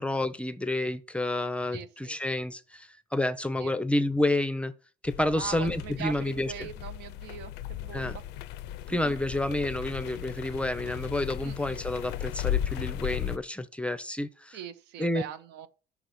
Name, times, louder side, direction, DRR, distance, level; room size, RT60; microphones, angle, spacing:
voice 1, 0.0-4.7 5.0-6.7 7.9-8.2 8.9-14.6 15.0-15.2, left 1 dB, 5° left, 0.5 m, -29 dB
voice 2, 1.7-2.2 3.6-3.7 5.3-8.2 8.9-9.1 11.4-11.8 14.5-15.7, right 10 dB, 85° right, 0.7 m, -41 dB
sound 1, 5.1-13.4, left 11 dB, 85° left, 0.4 m, -36 dB
6.1 x 3.9 x 5.7 m
cardioid pair, 110°, 17 cm